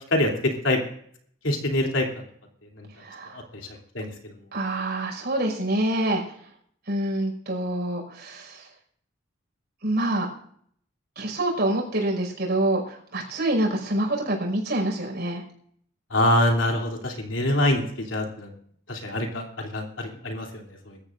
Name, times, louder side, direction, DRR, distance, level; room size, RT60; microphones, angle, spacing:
voice 1, 0.1-0.8 1.4-2.2 2.8-2.9 3.3-3.6 3.9-4.3 16.1-17.8 18.1-18.5 18.9-21.0, left 1 dB, 85° left, 1 dB, 3.2 m, -25 dB
voice 2, 3.0-3.4 4.5-6.2 6.9-8.7 9.8-10.3 11.2-15.4, right 1 dB, 60° right, 0 dB, 5.6 m, -26 dB
25.5 x 13.5 x 2.6 m, 0.64 s
head